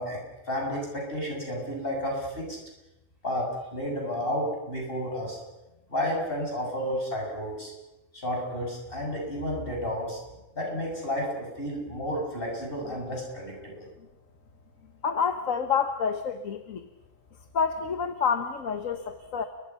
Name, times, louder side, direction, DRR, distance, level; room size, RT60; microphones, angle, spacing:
voice 1, 0.0-2.6 3.2-5.4 5.9-7.7 8.1-10.2 10.6-13.9, equal, 45° left, 0 dB, 7.6 m, -31 dB
voice 2, 15.0-16.9 17.5-19.4, left 6 dB, 85° left, 7 dB, 1.6 m, -28 dB
30.0 x 23.5 x 5.8 m, 0.97 s
omnidirectional pair, 1.4 m